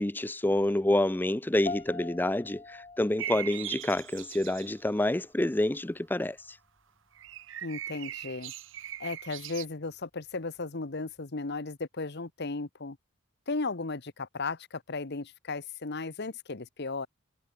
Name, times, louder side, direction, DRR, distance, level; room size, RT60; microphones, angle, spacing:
voice 1, 0.0-6.6, left 1 dB, 10° left, 0.5 m, -28 dB
sound 1, 1.7-11.2, left 3 dB, 25° left, 2.5 m, -47 dB
sound 2, 3.2-4.8 7.1-9.6, right 12 dB, 65° right, 0.8 m, -40 dB
voice 2, 7.6-8.5 9.0-13.0 13.5-17.1, left 3 dB, 55° left, 1.2 m, -35 dB
head